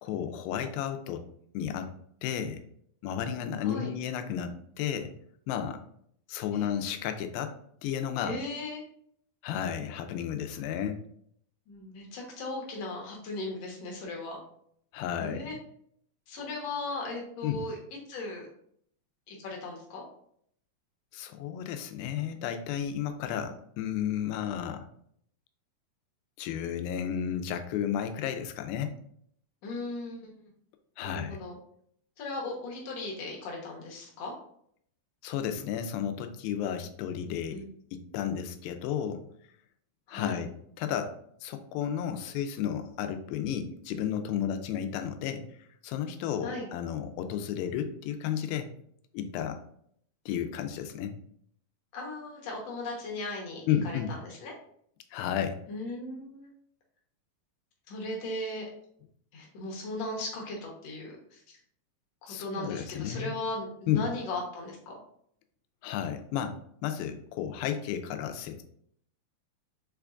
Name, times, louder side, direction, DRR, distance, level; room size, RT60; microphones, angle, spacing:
voice 1, 0.0-1.2 1.5-1.9 2.2-2.6 3.0-5.1 5.5-5.8 6.3-7.5 7.8-8.3 9.4-11.0 14.9-15.5 17.4-17.6 21.1-24.9 26.4-28.9 31.0-31.4 35.2-37.6 37.9-39.2 40.1-40.5 40.8-41.1 41.4-45.4 45.8-48.7 49.1-49.6 50.3-51.1 53.7-54.1 55.1-55.6 62.3-63.3 63.9-64.1 65.8-66.6 66.8-68.6, left 9 dB, 90° left, 7 dB, 2.4 m, -32 dB
voice 2, 3.6-3.9 6.5-6.8 8.2-8.8 11.7-14.4 15.2-15.6 16.3-17.8 18.1-18.5 19.3-20.0 29.6-30.3 31.0-31.5 32.2-34.3 37.3-37.7 40.1-40.4 46.4-46.7 51.9-54.5 55.7-56.5 57.9-58.7 59.3-61.4 62.2-65.0, left 2 dB, 65° left, -1 dB, 1.6 m, -37 dB
5.9 x 3.4 x 2.4 m, 0.67 s
omnidirectional pair, 4.1 m